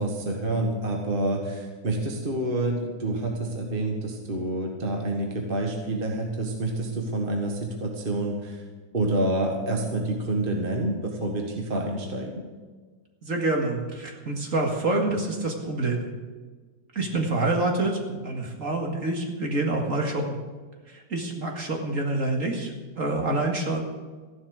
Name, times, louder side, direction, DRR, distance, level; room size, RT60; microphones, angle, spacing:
voice 1, 0.0-8.6 8.9-12.5, right 1 dB, 30° right, 1 dB, 1.7 m, -28 dB
voice 2, 13.2-16.1 16.9-20.4 20.9-23.8, right 2 dB, 45° right, 1 dB, 2.4 m, -27 dB
14.5 x 11.5 x 6.5 m, 1.4 s
omnidirectional pair, 1.9 m